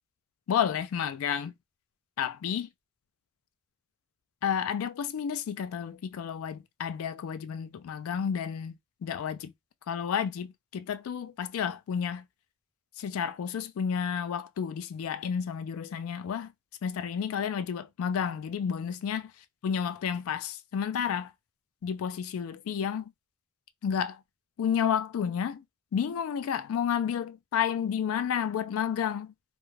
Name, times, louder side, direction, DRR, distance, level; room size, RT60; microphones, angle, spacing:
voice 1, 0.5-1.5 2.2-2.7 4.4-9.5 9.9-12.2 13.0-16.5 16.8-19.3 19.6-21.3 21.8-23.1 23.8-24.2 24.6-25.6 25.9-29.3, left 8 dB, 85° left, 0.3 m, -31 dB
2.4 x 2.1 x 3.0 m
head